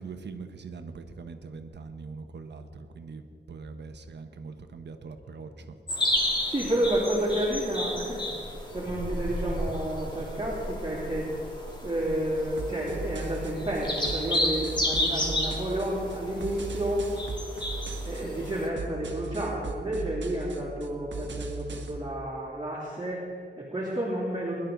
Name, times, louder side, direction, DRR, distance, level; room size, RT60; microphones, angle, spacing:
voice 1, 0.0-5.8 18.2-18.5, right 4 dB, 70° right, 7 dB, 1.1 m, -42 dB
sound 1, 5.9-18.7, left 1 dB, 25° left, 2.1 m, -32 dB
voice 2, 6.5-8.2 8.7-11.3 11.8-17.1 18.0-24.5, right 1 dB, 20° right, -7 dB, 3.1 m, -30 dB
sound 2, 12.6-22.0, right 3 dB, 90° right, 1.3 m, -38 dB
21.5 x 11.0 x 4.0 m, 2.3 s
wide cardioid pair, 125°, 19 cm